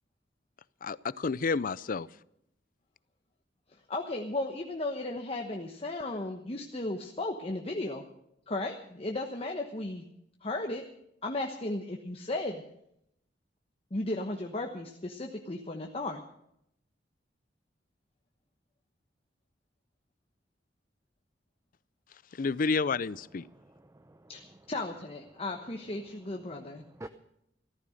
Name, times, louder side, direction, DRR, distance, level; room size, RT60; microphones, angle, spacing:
voice 1, 0.8-2.1 22.4-23.5, left 4 dB, 50° left, 20 dB, 0.5 m, -30 dB
voice 2, 3.9-8.0 8.5-10.0 10.4-10.9 11.2-12.6 13.9-16.2 24.3-26.8, left 2 dB, 35° left, 3 dB, 1.1 m, -35 dB
voice 3, 23.5-24.6 26.6-27.1, right 1 dB, 15° right, 9 dB, 0.6 m, -50 dB
14.5 x 13.5 x 6.5 m, 0.77 s
head